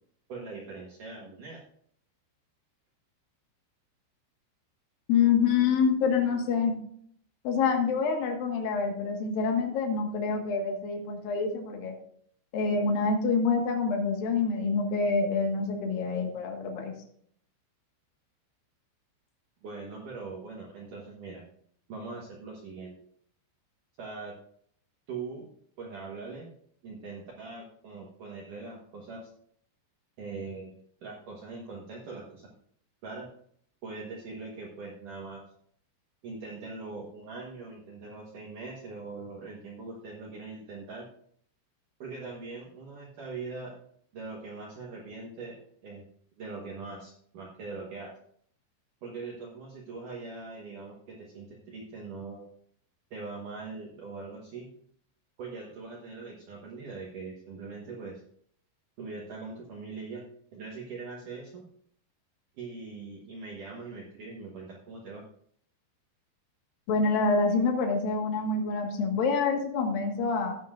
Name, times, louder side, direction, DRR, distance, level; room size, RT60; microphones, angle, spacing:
voice 1, 0.3-1.6 19.6-21.5 21.9-23.0 24.0-24.4 25.1-25.5 25.8-26.5 26.8-29.3 30.2-30.7 31.0-32.5 33.0-33.3 33.8-35.4 36.2-41.1 42.0-43.8 44.1-46.1 46.4-48.1 49.0-52.5 53.1-54.7 55.4-58.2 59.0-61.7 62.6-65.2, right 4 dB, 75° right, -2 dB, 1.9 m, -41 dB
voice 2, 5.1-6.7 7.4-11.9 12.5-16.9 66.9-70.6, left 5 dB, 60° left, 2 dB, 2.7 m, -26 dB
15.0 x 9.4 x 2.5 m, 0.63 s
omnidirectional pair, 5.8 m